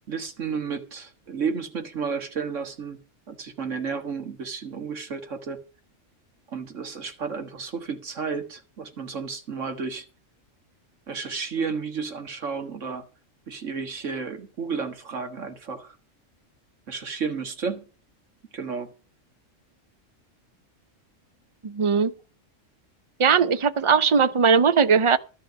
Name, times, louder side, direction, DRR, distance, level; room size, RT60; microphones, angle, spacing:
voice 1, 0.1-3.0 3.3-5.6 6.5-10.1 11.1-13.1 13.5-16.0 16.9-17.8 18.5-18.9, right 5 dB, 70° right, 2.0 m, -32 dB
voice 2, 21.6-22.1 23.2-25.2, right 6 dB, 40° right, 0.4 m, -19 dB
12.5 x 5.7 x 8.0 m
omnidirectional pair, 1.3 m